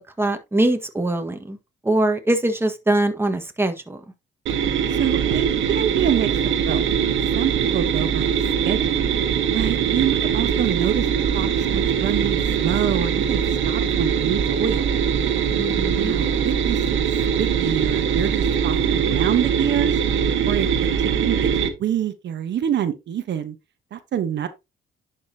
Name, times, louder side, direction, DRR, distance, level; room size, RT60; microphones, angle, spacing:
voice 1, 0.2-1.6 1.8-4.0 15.5-16.1, right 1 dB, 10° right, 1.5 m, -22 dB
Power Steering, 4.5-21.7, right 7 dB, 80° right, 1.5 m, -22 dB
voice 2, 4.9-6.8 7.3-8.3 8.6-9.1 9.5-11.1 11.3-14.9 15.9-17.1 17.4-20.0 20.5-20.7 21.2-21.5 21.8-23.6 23.9-24.5, right 10 dB, 65° right, 1.0 m, -26 dB
10.5 x 5.2 x 2.8 m
cardioid pair, 90°, 20 cm